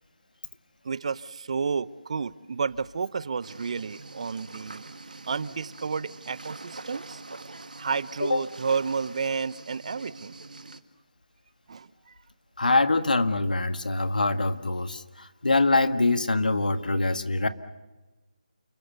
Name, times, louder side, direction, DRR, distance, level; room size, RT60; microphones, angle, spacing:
voice 1, 0.8-4.9 5.3-7.4 7.8-10.4 11.7-12.2, right 5 dB, 50° right, 18 dB, 0.8 m, -31 dB
sound 1, 3.4-10.8, right 3 dB, 75° right, 1.8 m, -44 dB
voice 2, 12.6-17.5, left 2 dB, 75° left, 9 dB, 1.7 m, -24 dB
29.5 x 22.0 x 6.9 m, 1.2 s
figure-of-eight pair, 160°, 4 cm